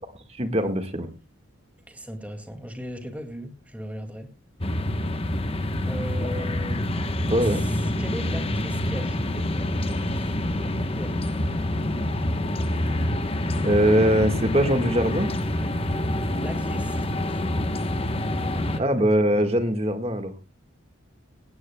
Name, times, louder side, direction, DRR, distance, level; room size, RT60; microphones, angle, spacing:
voice 1, 0.3-1.1 7.3-7.6 13.6-15.3 18.8-20.3, equal, 30° right, 8 dB, 1.6 m, -22 dB
voice 2, 1.9-4.3 5.9-6.8 7.4-11.2 16.4-17.1 17.4-18.9, equal, 5° right, 5 dB, 2.1 m, -38 dB
sound 1, 4.6-18.8, left 1 dB, 25° left, 1.0 m, -27 dB
17.5 x 17.0 x 2.2 m, 0.29 s
head